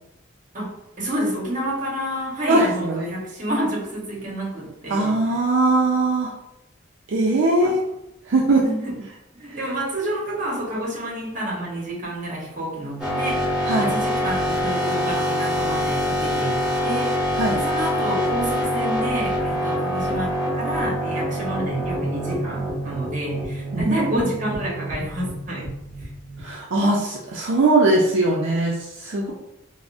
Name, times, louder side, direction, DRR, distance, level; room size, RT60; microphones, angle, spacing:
voice 1, 1.0-5.2 7.6-7.7 8.6-9.0 9.3-17.2 17.5-25.7, right 1 dB, 40° right, -4 dB, 1.0 m, -29 dB
voice 2, 2.5-3.1 4.9-6.3 7.1-7.8 8.3-8.6 9.5-9.6 13.6-13.9 17.4-17.6 23.7-24.0 26.4-29.3, right 2 dB, 65° right, -3 dB, 0.4 m, -20 dB
sound 1, 13.0-26.5, equal, 5° right, 1.0 m, -25 dB
3.6 x 2.0 x 2.5 m, 0.87 s
head